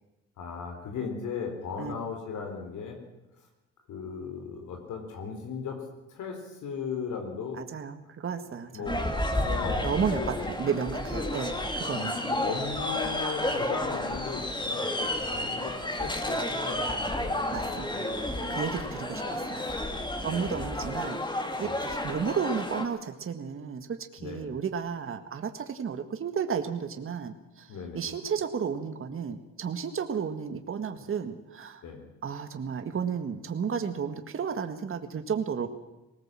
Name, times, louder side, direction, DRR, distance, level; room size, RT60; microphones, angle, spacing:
voice 1, 0.4-3.0 3.9-7.6 8.7-10.5 11.1-11.5 11.9-18.9 20.2-20.8 21.6-22.0 24.2-24.6 27.7-28.1 31.0-31.1 31.8-32.0, left 5 dB, 80° left, 4 dB, 4.1 m, -37 dB
voice 2, 7.6-9.0 9.8-12.2 17.5-18.2 18.5-19.7 20.2-27.7 27.9-31.8 32.2-35.7, right 6 dB, 45° right, 7 dB, 1.7 m, -33 dB
sound 1, 8.9-22.8, left 1 dB, 15° left, 2.6 m, -31 dB
19.5 x 19.0 x 7.6 m, 0.99 s
cardioid pair, 90°, 30 cm